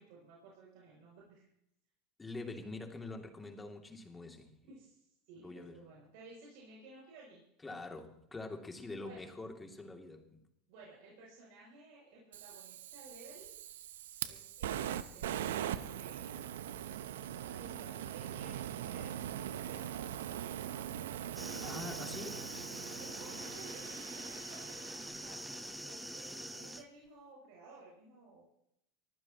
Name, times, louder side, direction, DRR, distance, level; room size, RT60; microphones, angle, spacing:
voice 1, 0.0-1.5 4.7-7.4 9.0-9.3 10.7-13.5 14.2-16.5 17.1-20.9 21.9-22.4 23.0-28.4, right 3 dB, 70° right, -3 dB, 6.9 m, -56 dB
voice 2, 2.2-4.6 5.4-5.8 7.6-10.4 21.6-22.4, left 2 dB, 15° left, 3 dB, 2.6 m, -45 dB
Fire, 12.3-25.4, right 10 dB, 85° right, 0.7 m, -42 dB
sound 1, 21.3-26.8, right 1 dB, 5° right, 1.1 m, -44 dB
24.0 x 15.0 x 3.0 m, 0.78 s
supercardioid pair, 105°, 0 cm